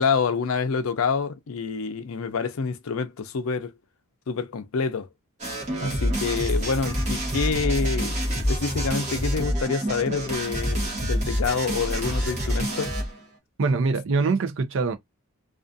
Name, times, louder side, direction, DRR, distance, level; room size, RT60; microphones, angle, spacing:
voice 1, 0.0-3.7 4.3-5.1 5.8-12.9, left 5 dB, 65° left, 0.5 m, -27 dB
sound 1, 5.4-13.2, equal, 30° right, 1.0 m, -27 dB
voice 2, 13.6-15.0, right 4 dB, 60° right, 0.5 m, -24 dB
2.4 x 2.4 x 2.5 m
head